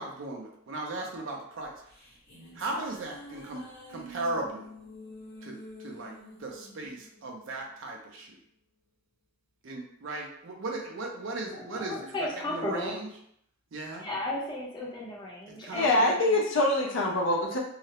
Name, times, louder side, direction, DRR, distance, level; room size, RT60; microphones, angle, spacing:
voice 1, 0.0-1.7 2.6-3.6 3.9-4.7 5.4-6.1 6.4-8.4 9.6-12.1 12.5-13.1 13.7-14.1 15.6-15.8, right 2 dB, 65° right, 0 dB, 0.5 m, -37 dB
sound 1, 1.6-8.2, equal, 50° left, 0.9 m, -48 dB
voice 2, 11.5-12.9 14.0-16.1, left 1 dB, 20° left, -4 dB, 0.6 m, -35 dB
voice 3, 15.7-17.6, left 1 dB, 65° left, -2 dB, 0.5 m, -24 dB
2.4 x 2.0 x 2.8 m, 0.70 s
head